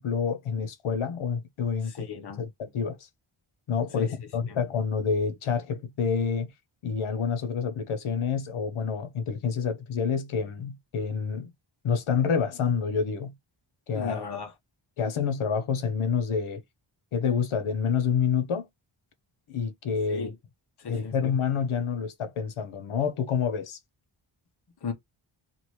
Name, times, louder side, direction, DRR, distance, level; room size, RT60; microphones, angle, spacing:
voice 1, 0.0-2.1 2.4-3.0 3.7-6.5 6.8-11.5 11.8-13.3 13.9-14.2 15.0-16.6 17.1-18.7 19.5-20.3 20.9-23.8, left 6 dB, 80° left, 0.9 m, -28 dB
voice 2, 1.9-2.4 4.0-4.1 4.5-4.6 13.9-14.5 20.1-20.3 20.8-21.1 24.8-24.9, left 5 dB, 50° left, 1.0 m, -35 dB
2.8 x 2.6 x 3.1 m
wide cardioid pair, 120°, 49 cm